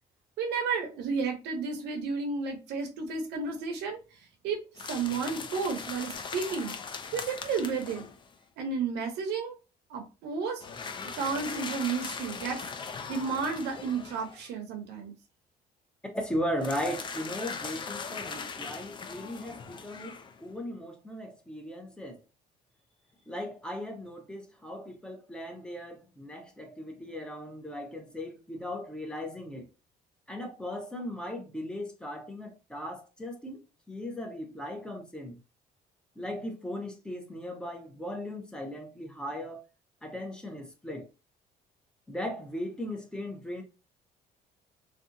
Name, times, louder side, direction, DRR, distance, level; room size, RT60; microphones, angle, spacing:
voice 1, 0.4-4.0 4.4-6.8 7.1-8.1 8.6-9.6 9.9-10.6 11.2-12.7 13.1-15.1, right 5 dB, 85° right, 0.7 m, -32 dB
sound 1, 4.8-8.3 10.6-14.5 16.6-20.5, left 5 dB, 30° left, 0.4 m, -40 dB
voice 2, 16.1-22.2 23.3-29.7 30.3-35.4 36.2-39.6 40.0-41.1 42.1-43.6, left 1 dB, 5° left, 0.7 m, -37 dB
2.6 x 2.3 x 2.6 m
cardioid pair, 110°, 17 cm